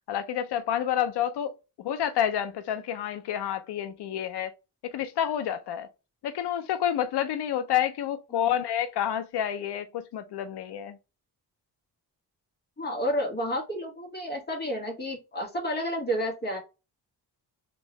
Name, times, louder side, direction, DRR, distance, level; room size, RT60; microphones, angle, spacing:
voice 1, 0.1-1.5 1.8-4.5 4.8-5.9 6.2-11.0, left 10 dB, 85° left, 0.6 m, -29 dB
voice 2, 12.8-16.6, equal, 25° left, 1.7 m, -30 dB
3.6 x 3.0 x 3.0 m
wide cardioid pair, 150°, 39 cm